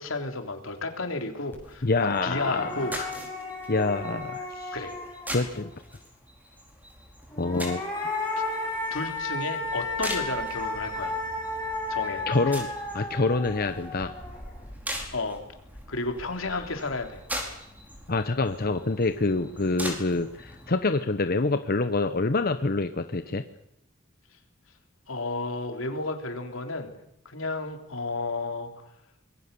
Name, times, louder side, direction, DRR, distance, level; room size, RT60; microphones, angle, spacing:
voice 1, 0.0-2.9 4.7-4.9 8.9-11.2 11.9-12.2 15.1-15.4 15.9-17.2 25.1-26.9 27.2-28.9, left 2 dB, 85° left, 5 dB, 3.5 m, -32 dB
sound 1, 1.5-1.6 2.0-5.7 7.3-14.6, left 2 dB, 10° left, 7.6 m, -33 dB
sound 2, 1.6-20.7, equal, 10° right, 4.7 m, -41 dB
voice 2, 1.8-3.1 3.7-4.8 5.3-5.7 7.4-7.8 12.3-12.7 12.9-14.1 16.5-16.7 18.1-23.4, left 3 dB, 50° left, 9 dB, 1.0 m, -26 dB
25.0 x 21.5 x 6.9 m, 0.77 s
head